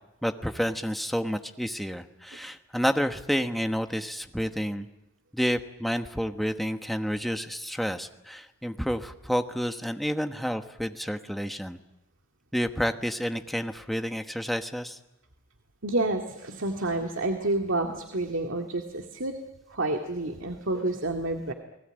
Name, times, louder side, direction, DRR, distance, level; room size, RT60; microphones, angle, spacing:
voice 1, 0.2-4.9 5.3-11.8 12.5-15.0, equal, ahead, 6 dB, 1.2 m, -30 dB
voice 2, 15.8-19.3 19.7-21.5, right 2 dB, 75° right, 3 dB, 2.1 m, -29 dB
29.5 x 20.0 x 9.0 m, 0.95 s
head